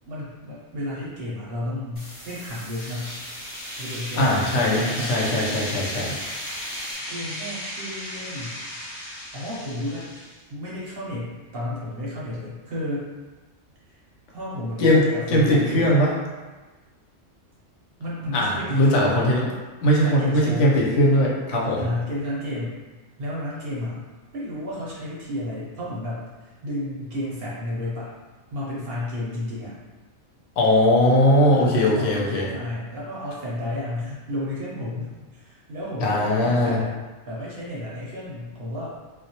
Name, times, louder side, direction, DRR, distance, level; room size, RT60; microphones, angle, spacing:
voice 1, 0.1-3.1 3.8-5.2 6.1-6.2 7.1-8.6 9.3-10.1 10.5-13.1 13.9-14.0 14.3-15.9 18.0-19.2 19.9-20.7 21.8-22.8 23.2-24.0 24.3-28.1 28.5-29.7 31.5-36.9 37.3-38.9, left 1 dB, 60° right, -7 dB, 0.7 m, -32 dB
sound 1, 2.0-7.0, equal, 20° left, 0.9 m, -43 dB
sound 2, 2.5-10.4, equal, 60° left, 0.3 m, -35 dB
voice 2, 4.2-6.1 14.8-16.1 18.3-19.4 19.8-21.9 30.6-32.5 36.0-36.8, left 1 dB, 75° left, -3 dB, 0.9 m, -20 dB
2.2 x 2.0 x 2.7 m, 1.3 s
omnidirectional pair, 1.3 m